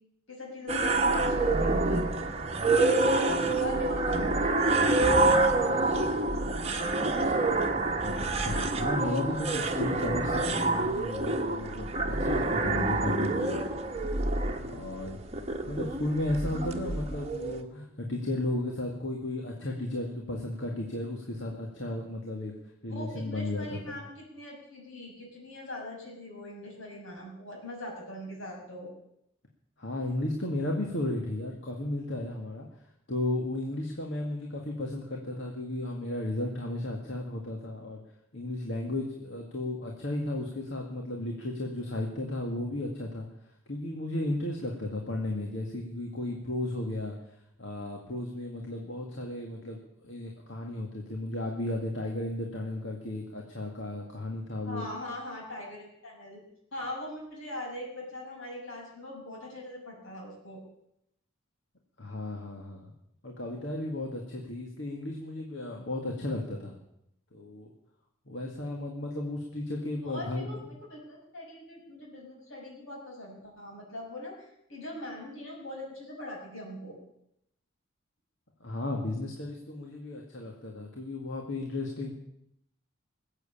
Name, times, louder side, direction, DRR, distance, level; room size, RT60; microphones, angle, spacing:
voice 1, 0.3-2.1 2.9-6.9 22.9-28.9 54.6-56.4 56.7-60.6 70.0-77.0, left 1 dB, 80° left, -1 dB, 6.2 m, -41 dB
sound 1, 0.7-17.6, right 2 dB, 30° right, 1.3 m, -27 dB
voice 2, 8.0-13.7 14.7-15.2 15.7-22.5 22.8-24.0 29.8-32.7 33.1-38.0 38.3-43.3 43.7-47.2 47.6-54.9 62.0-62.9 63.2-66.8 67.3-67.7 68.3-70.6 78.6-82.1, left 1 dB, 65° left, 0 dB, 2.1 m, -34 dB
20.0 x 8.1 x 8.7 m, 0.79 s
head